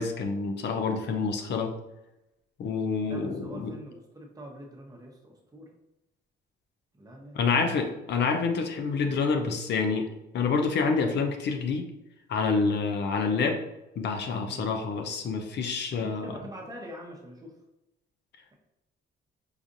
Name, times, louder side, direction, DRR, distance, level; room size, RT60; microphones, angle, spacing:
voice 1, 0.0-1.8 2.6-3.8 7.3-10.1 10.3-11.9 12.3-13.6 14.0-16.4, left 4 dB, 60° left, 5 dB, 0.5 m, -27 dB
voice 2, 3.0-5.7 7.0-7.5 14.5-14.7 15.9-17.6, equal, 20° right, -1 dB, 0.8 m, -44 dB
4.8 x 2.4 x 2.6 m, 0.92 s
cardioid pair, 90°, 20 cm